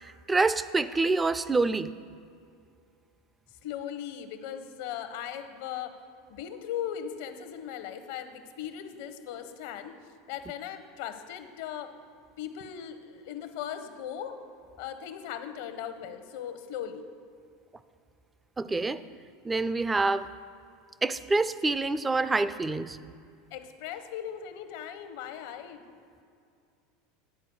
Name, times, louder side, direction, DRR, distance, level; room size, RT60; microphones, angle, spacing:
voice 1, 0.3-1.9 18.6-19.0 19.4-20.3 21.0-23.0, right 3 dB, 15° right, 14 dB, 0.3 m, -26 dB
voice 2, 3.6-5.9 6.3-11.9 12.4-14.4 14.8-17.0 23.5-25.8, left 9 dB, 70° left, 9 dB, 0.7 m, -38 dB
9.6 x 4.2 x 6.8 m, 2.4 s
supercardioid pair, 115°, 0 cm